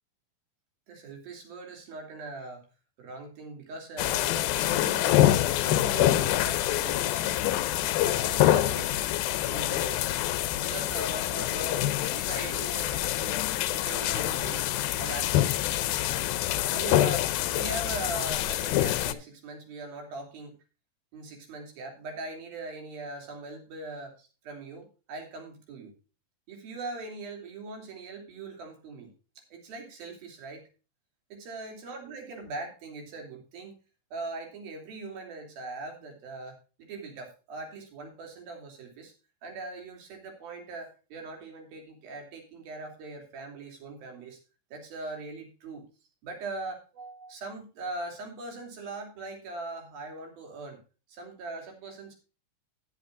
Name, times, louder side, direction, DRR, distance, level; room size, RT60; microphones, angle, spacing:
voice 1, 0.9-2.7 3.0-5.3 5.6-7.3 8.0-8.9 9.5-10.2 10.6-13.4 13.7-14.7 15.0-15.6 16.7-20.6 21.1-25.9 26.5-29.1 29.5-30.6 31.3-33.8 34.1-39.1 39.4-44.4 44.7-45.9 46.2-50.8 51.1-52.2, right 3 dB, 80° right, 2 dB, 4.8 m, -40 dB
sound 1, 4.0-19.1, left 13 dB, 85° left, 2.5 m, -26 dB
14.0 x 10.0 x 2.6 m, 0.33 s
omnidirectional pair, 4.2 m